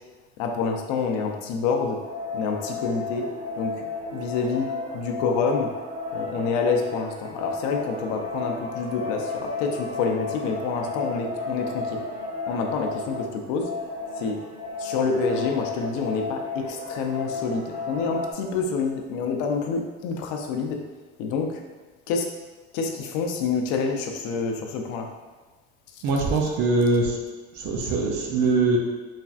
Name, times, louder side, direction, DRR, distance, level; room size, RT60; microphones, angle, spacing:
voice 1, 0.4-2.0 2.3-3.3 3.6-3.8 4.1-5.7 6.1-12.0 12.5-13.7 14.2-14.4 14.8-20.8 21.2-21.6 22.1-22.3 22.7-25.1, left 5 dB, 70° left, 3 dB, 0.5 m, -27 dB
sound 1, 2.0-18.3, left 3 dB, 20° right, 1.2 m, -33 dB
voice 2, 26.0-27.2 27.5-28.8, right 3 dB, 60° right, 1 dB, 0.5 m, -22 dB
3.3 x 2.4 x 2.4 m, 1.3 s
cardioid pair, 160°, 32 cm